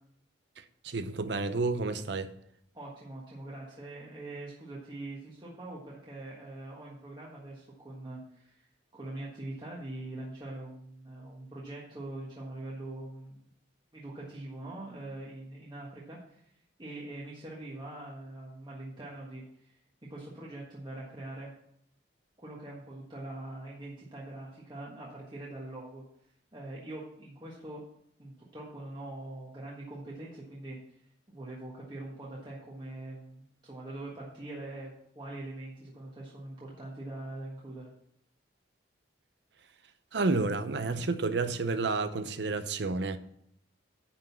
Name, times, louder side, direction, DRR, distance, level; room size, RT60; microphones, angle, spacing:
voice 1, 0.6-2.3 40.1-43.2, right 3 dB, 65° right, 0.7 m, -30 dB
voice 2, 2.7-8.7 8.9-13.4 13.9-16.4 16.8-19.7 20.1-21.5 22.4-26.0 26.5-27.8 28.2-30.8 31.3-34.9 35.1-37.9, right 2 dB, 25° right, 1.4 m, -43 dB
10.5 x 3.9 x 7.1 m
head